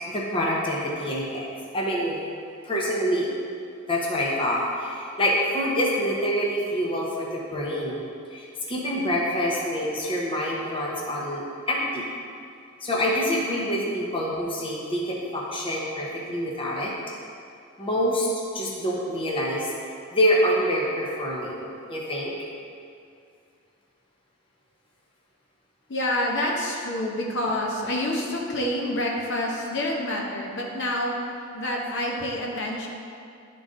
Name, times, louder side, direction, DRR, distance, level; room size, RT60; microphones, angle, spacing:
voice 1, 0.1-1.5 1.7-2.2 2.6-3.3 3.9-8.0 8.3-12.1 12.8-16.9 17.8-18.3 18.5-19.7 20.1-21.6 21.9-22.3, equal, 25° left, -4 dB, 0.9 m, -26 dB
voice 2, 25.9-31.2 31.5-32.9, left 1 dB, 60° left, -2 dB, 0.9 m, -27 dB
10.5 x 3.9 x 3.8 m, 2.4 s
head